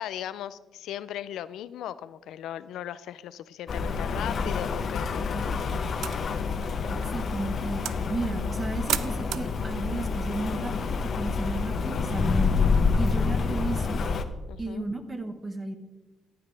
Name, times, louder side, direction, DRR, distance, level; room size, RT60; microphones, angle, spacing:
voice 1, 0.0-5.9 13.0-13.2 14.5-14.8, left 11 dB, 80° left, 16 dB, 0.4 m, -38 dB
Rain, 3.7-14.2, left 4 dB, 50° left, 0.8 m, -28 dB
sound 1, 6.0-11.5, right 11 dB, 80° right, 0.4 m, -38 dB
voice 2, 6.9-14.0 14.6-15.8, right 2 dB, 25° right, 8 dB, 1.3 m, -34 dB
14.5 x 8.6 x 3.3 m, 1.1 s
cardioid pair, 90°, 0 cm